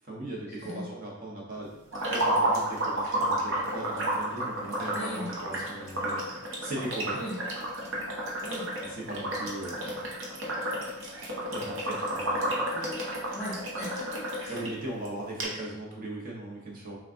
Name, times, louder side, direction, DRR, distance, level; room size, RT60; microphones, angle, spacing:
voice 1, 0.0-1.7 2.1-7.2 8.8-10.0 11.5-12.6 14.5-17.0, right 1 dB, 40° right, -3 dB, 0.9 m, -39 dB
sound 1, 1.9-14.7 15.0-15.1 15.4-15.5, right 1 dB, 65° right, 0.8 m, -31 dB
voice 2, 4.9-5.3 7.1-7.3 8.4-8.6 12.7-12.9 13.3-14.6, equal, 30° left, -5 dB, 1.4 m, -38 dB
5.8 x 2.4 x 2.6 m, 0.98 s
head